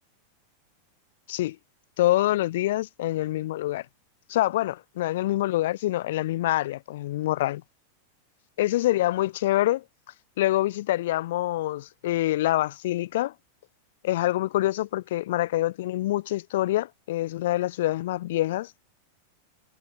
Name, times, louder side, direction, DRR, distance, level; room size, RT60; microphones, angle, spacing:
voice 1, 2.0-3.9 4.3-7.6 8.6-9.8 10.4-13.3 14.0-18.7, left 15 dB, 55° left, 2.4 m, -26 dB
figure-of-eight pair, 90°, 0 cm